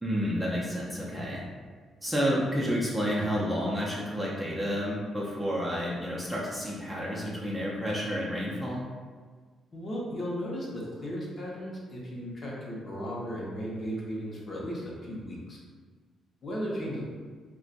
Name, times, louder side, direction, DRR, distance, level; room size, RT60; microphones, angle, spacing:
voice 1, 0.0-1.4 2.0-8.8, equal, 5° right, -6 dB, 0.6 m, -30 dB
voice 2, 9.7-15.6 16.4-17.0, equal, 40° left, -5 dB, 0.9 m, -35 dB
2.4 x 2.2 x 3.8 m, 1.5 s
cardioid pair, 90°, 0 cm